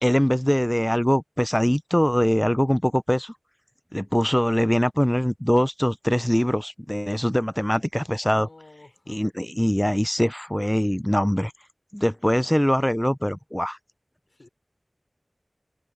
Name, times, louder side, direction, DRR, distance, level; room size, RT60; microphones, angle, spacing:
voice 1, 0.0-3.3 3.9-8.5 9.1-11.5 11.9-13.8, equal, 10° left, 0.6 m, -22 dB
voice 2, 8.3-9.3 14.3-14.5, left 2 dB, 70° left, 4.0 m, -51 dB
wide cardioid pair, 45°, 0 cm